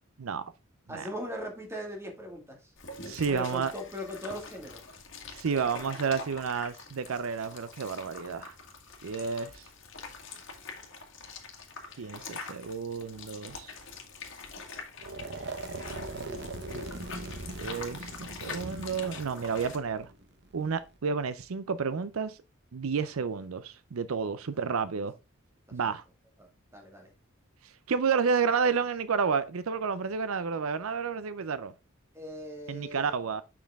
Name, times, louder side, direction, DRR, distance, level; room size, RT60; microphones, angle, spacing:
voice 1, 0.9-2.6 3.3-4.8 5.5-5.9 26.7-27.1 32.1-33.1, equal, 15° right, 2.0 m, -39 dB
sound 1, 2.8-19.8, left 4 dB, 60° left, 1.7 m, -45 dB
voice 2, 3.0-3.7 5.3-8.5 9.0-9.7 12.0-13.7 17.5-20.1 20.5-22.4 22.7-25.1 25.7-26.0 27.6-31.7 32.7-33.4, right 5 dB, 80° right, 0.5 m, -31 dB
sound 2, 15.0-21.0, right 2 dB, 55° right, 1.1 m, -40 dB
6.5 x 5.8 x 3.5 m
head